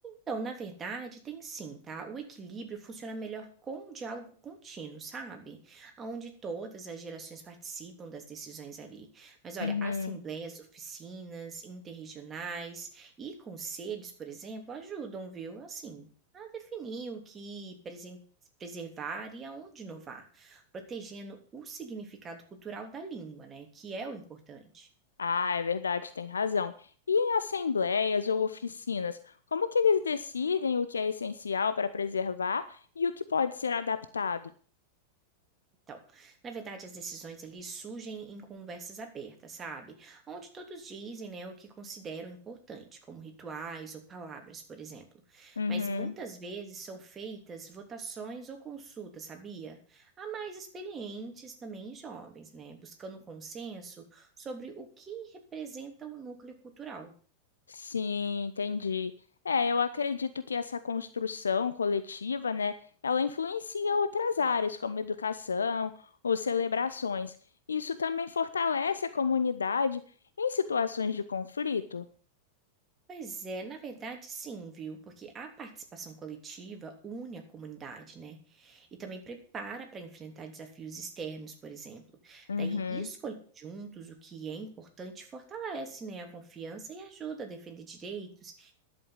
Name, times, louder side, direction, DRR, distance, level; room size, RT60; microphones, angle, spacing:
voice 1, 0.0-16.1 16.3-18.2 18.6-24.9 35.9-57.1 73.1-88.7, right 4 dB, 20° right, 3 dB, 3.1 m, -42 dB
voice 2, 9.6-10.2 25.2-26.7 27.1-29.2 29.5-34.4 45.6-46.1 57.7-59.1 59.4-62.7 63.0-65.9 66.2-67.3 67.7-70.0 70.4-72.1 82.5-83.1, left 5 dB, 70° left, 13 dB, 0.7 m, -30 dB
11.0 x 8.1 x 7.9 m, 0.43 s
figure-of-eight pair, 90°, 0 cm